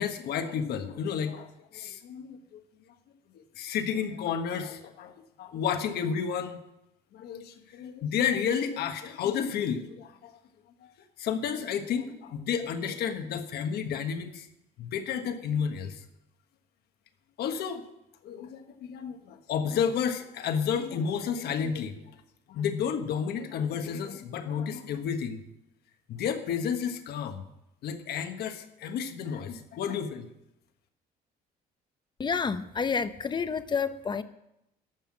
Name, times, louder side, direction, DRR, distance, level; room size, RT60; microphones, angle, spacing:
voice 1, 0.0-2.6 3.3-6.6 7.1-10.3 10.8-10.9 11.2-14.5 14.8-16.0 17.4-17.8 18.2-18.6 18.9-22.0 22.5-25.4 26.1-27.4 27.8-30.3, left 7 dB, 70° left, 7 dB, 1.4 m, -31 dB
voice 2, 32.2-34.2, left 5 dB, 25° left, 12 dB, 0.7 m, -29 dB
13.5 x 5.8 x 8.7 m, 0.87 s
cardioid pair, 110°, 17 cm